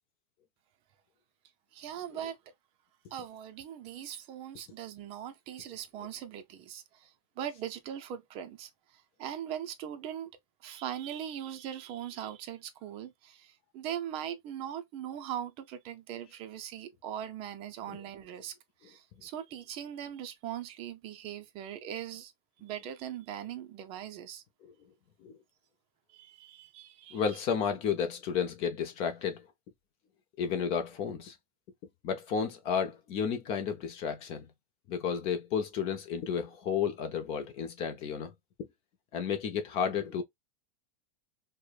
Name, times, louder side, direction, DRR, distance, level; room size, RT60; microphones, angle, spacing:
voice 1, 1.7-2.4 3.1-10.3 10.6-18.5 18.8-22.3 22.6-24.4 26.1-27.2, right 10 dB, 30° right, 0.6 m, -40 dB
voice 2, 27.1-29.4 30.4-31.3 32.0-34.5 34.9-38.3 39.1-40.2, left 7 dB, 30° left, 0.5 m, -32 dB
4.8 x 2.1 x 2.3 m
supercardioid pair, 160°, 18 cm